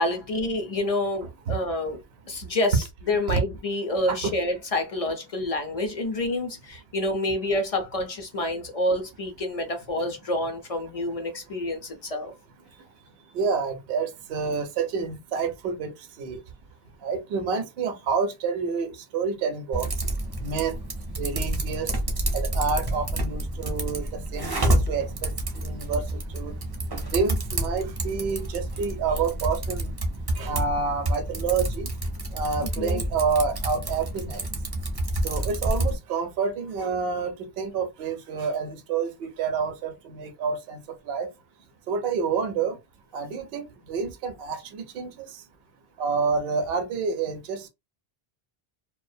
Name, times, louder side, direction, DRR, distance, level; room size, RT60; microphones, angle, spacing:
voice 1, 0.0-2.0 2.3-12.3 32.8-33.0, left 1 dB, 55° left, 0.4 m, -28 dB
voice 2, 13.3-15.9 16.2-16.4 17.0-19.9 20.4-20.7 21.2-21.9 22.3-26.0 26.3-26.5 27.1-29.9 30.4-31.9 32.3-34.4 35.2-40.8 41.1-41.3 41.9-42.8 43.1-45.3 46.0-47.7, right 5 dB, 75° right, 0.8 m, -28 dB
Typing, 19.7-36.0, right 1 dB, 30° right, 0.4 m, -29 dB
2.4 x 2.1 x 2.5 m
omnidirectional pair, 1.1 m